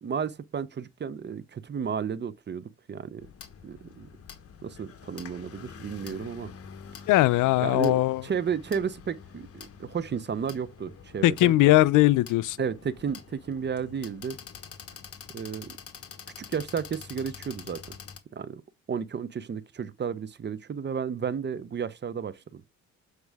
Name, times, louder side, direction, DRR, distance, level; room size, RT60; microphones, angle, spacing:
voice 1, 0.0-3.3 3.6-4.1 4.6-6.5 7.6-11.6 12.6-14.4 15.3-15.8 16.4-17.9 18.3-18.6 18.9-22.6, right 6 dB, 35° right, 0.8 m, -33 dB
sound 1, 3.2-18.2, left 7 dB, 50° left, 1.3 m, -46 dB
voice 2, 7.1-8.2 11.2-12.6, left 16 dB, 85° left, 0.6 m, -20 dB
8.2 x 4.8 x 3.5 m
cardioid pair, 90°, 30 cm